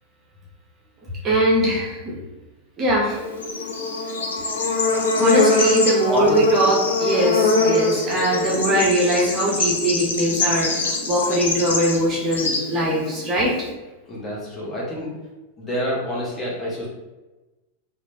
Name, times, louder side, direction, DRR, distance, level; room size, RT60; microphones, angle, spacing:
voice 1, 1.2-2.1 2.8-3.2 5.2-13.5, right 1 dB, 25° right, -4 dB, 0.7 m, -21 dB
Bird / Insect, 3.1-13.7, left 3 dB, 70° left, 0.4 m, -23 dB
voice 2, 6.1-6.7 14.1-15.1 15.6-16.9, equal, 20° left, -5 dB, 0.8 m, -27 dB
3.0 x 2.1 x 2.7 m, 1.1 s
figure-of-eight pair, 90°, 0 cm